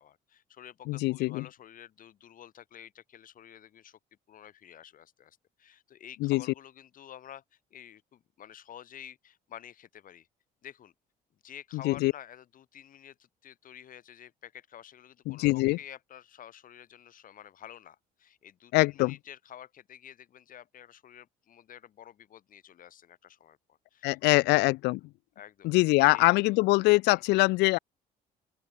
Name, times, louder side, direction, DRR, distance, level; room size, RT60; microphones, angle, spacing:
voice 1, 0.0-4.0 4.3-10.3 10.6-10.9 11.4-24.4 25.4-25.7 26.0-26.3 27.1-27.4, left 10 dB, 55° left, 2.7 m, -50 dB
voice 2, 0.9-1.5 6.2-6.4 11.7-12.1 15.3-15.8 18.7-19.1 24.0-25.0 25.6-27.8, left 22 dB, 85° left, 0.4 m, -23 dB
open air
cardioid pair, 110°, 17 cm